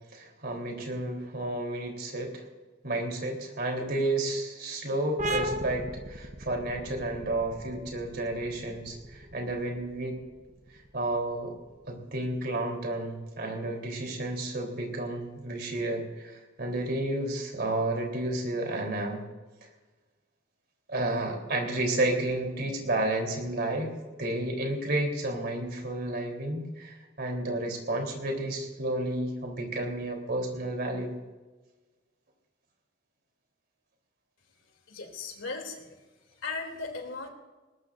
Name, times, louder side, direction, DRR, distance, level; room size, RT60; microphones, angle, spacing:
voice 1, 0.1-2.4 2.8-10.2 10.9-11.5 11.9-19.2 20.9-31.2, right 1 dB, 55° right, 1 dB, 3.6 m, -31 dB
sound 1, 5.2-12.5, right 1 dB, 40° right, 0.9 m, -38 dB
voice 2, 34.5-37.3, left 4 dB, 85° left, 3 dB, 2.9 m, -38 dB
20.0 x 20.0 x 2.6 m, 1.2 s
head